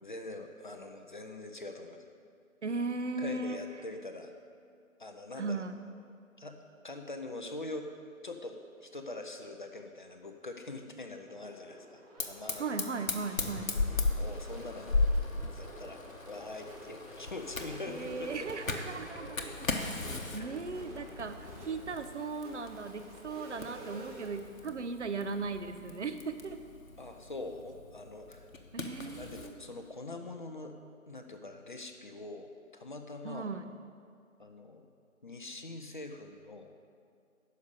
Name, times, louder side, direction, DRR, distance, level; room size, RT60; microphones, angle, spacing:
voice 1, 0.0-2.0 3.2-4.3 5.0-5.6 6.4-6.6 6.8-7.9 8.2-12.8 14.2-15.0 15.5-16.0 16.3-18.3 20.3-20.5 27.0-28.5 29.2-30.8 31.1-33.5 34.4-34.9 35.2-36.7, left 2 dB, 35° left, 5 dB, 0.6 m, -43 dB
voice 2, 2.6-3.6 5.4-5.7 12.6-13.7 17.9-19.9 20.3-26.6 28.7-29.6 33.2-33.7, right 4 dB, 55° right, 8 dB, 0.7 m, -37 dB
sound 1, 11.2-24.4, right 1 dB, 30° right, 1.5 m, -51 dB
Fire, 12.2-29.5, left 3 dB, 70° left, 1.2 m, -37 dB
11.5 x 5.4 x 6.7 m, 2.3 s
figure-of-eight pair, 155°, 42 cm